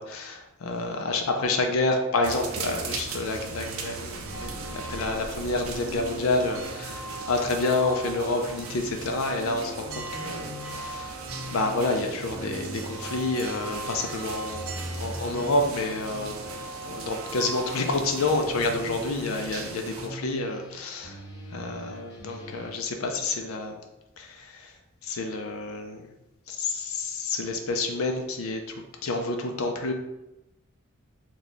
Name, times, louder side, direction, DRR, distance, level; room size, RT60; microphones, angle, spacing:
voice 1, 0.0-11.2 11.5-16.4 16.8-21.2 21.5-23.8 24.2-24.7 25.0-26.1 26.5-29.9, left 2 dB, 80° left, 4 dB, 0.5 m, -29 dB
sound 1, 2.2-20.1, right 4 dB, 85° right, 0.5 m, -39 dB
sound 2, 4.3-19.1, right 1 dB, 20° left, 0.7 m, -41 dB
sound 3, 9.9-22.7, left 1 dB, 50° left, 1.0 m, -43 dB
3.1 x 2.3 x 3.9 m, 0.94 s
head